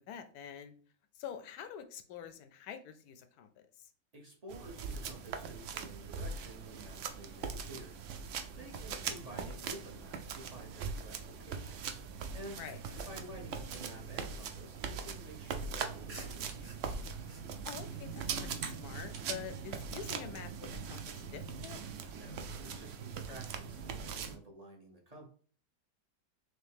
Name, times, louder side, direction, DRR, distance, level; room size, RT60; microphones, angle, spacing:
voice 1, 0.1-0.7 1.2-3.9 8.7-9.0 12.6-12.8 17.6-21.8, left 8 dB, 70° left, 9 dB, 1.0 m, -47 dB
voice 2, 4.1-8.0 8.5-11.9 12.3-12.6 12.9-16.7 22.1-25.3, right 1 dB, 30° right, -1 dB, 0.7 m, -51 dB
sound 1, 4.5-24.4, right 6 dB, 80° right, 0.6 m, -41 dB
sound 2, 12.2-15.6 16.1-18.8, right 3 dB, 50° right, 1.4 m, -57 dB
sound 3, 16.3-16.7 19.0-19.4 21.5-21.8 24.0-24.4, right 5 dB, 65° right, 1.3 m, -56 dB
6.2 x 2.1 x 3.4 m, 0.43 s
omnidirectional pair, 1.9 m